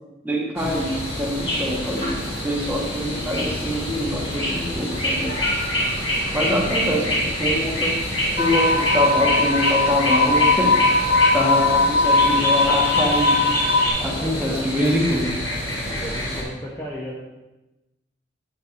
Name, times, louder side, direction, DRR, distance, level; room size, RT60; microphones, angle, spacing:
voice 1, 0.2-5.4 6.3-8.0 8.4-10.8 11.3-13.5 14.0-15.3, equal, 10° right, -3 dB, 1.4 m, -25 dB
sound 1, 0.6-16.4, equal, 35° left, 3.1 m, -26 dB
sound 2, 2.2-9.0, left 1 dB, 85° left, 3.3 m, -39 dB
voice 2, 6.4-6.8 7.1-7.2 14.2-14.7 15.8-17.2, equal, 10° left, -5 dB, 1.0 m, -35 dB
sound 3, 8.4-13.9, left 3 dB, 55° left, 0.7 m, -19 dB
9.9 x 8.4 x 2.6 m, 1.0 s
head